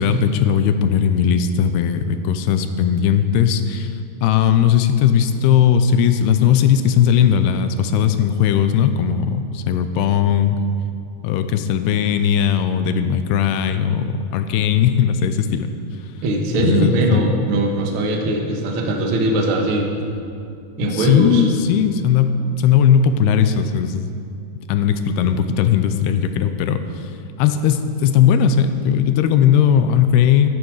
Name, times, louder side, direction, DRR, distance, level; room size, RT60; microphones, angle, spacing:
voice 1, 0.0-3.9 4.2-10.6 11.2-15.7 16.6-17.2 20.8-24.1 24.7-26.9 27.4-30.5, left 8 dB, 85° left, 9 dB, 2.6 m, -17 dB
voice 2, 16.2-20.0 20.8-21.5, right 1 dB, 75° right, 1 dB, 1.1 m, -20 dB
13.5 x 13.0 x 4.8 m, 2.5 s
omnidirectional pair, 4.8 m